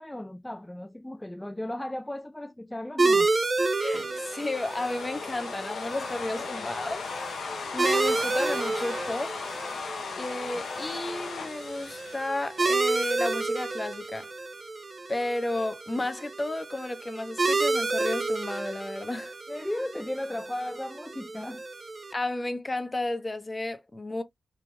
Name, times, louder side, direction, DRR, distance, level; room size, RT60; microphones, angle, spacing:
voice 1, 0.0-3.3 6.3-6.5 19.5-21.6, left 1 dB, 15° left, 0.3 m, -35 dB
sound 1, 3.0-22.1, right 3 dB, 40° right, 0.5 m, -30 dB
voice 2, 3.8-7.0 7.7-9.4 10.2-14.3 15.1-19.3 22.1-24.2, left 2 dB, 30° left, 0.8 m, -32 dB
sound 2, 3.9-13.1, left 5 dB, 70° left, 0.6 m, -37 dB
3.4 x 2.9 x 2.2 m
supercardioid pair, 45°, 0 cm